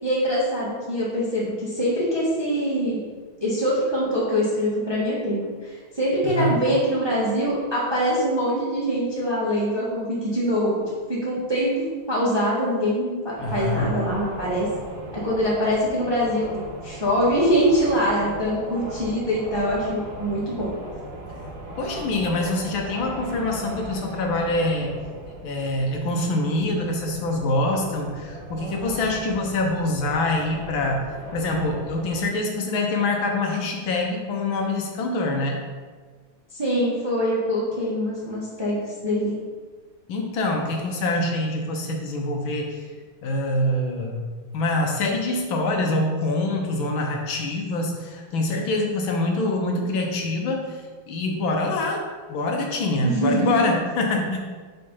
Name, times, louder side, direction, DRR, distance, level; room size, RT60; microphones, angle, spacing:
voice 1, 0.0-3.0 3.4-10.8 11.1-14.7 15.1-20.7 36.5-39.4 53.0-53.6, equal, 15° right, -7 dB, 1.0 m, -24 dB
voice 2, 6.2-6.6 13.4-13.9 21.8-24.9 25.4-31.1 31.3-35.6 40.1-42.9 43.2-44.2 44.5-50.8 51.1-52.0 52.3-54.4, left 2 dB, 70° left, 1 dB, 1.5 m, -25 dB
sound 1, 13.4-32.2, right 1 dB, 65° right, 1.5 m, -38 dB
5.6 x 3.9 x 5.4 m, 1.5 s
omnidirectional pair, 2.4 m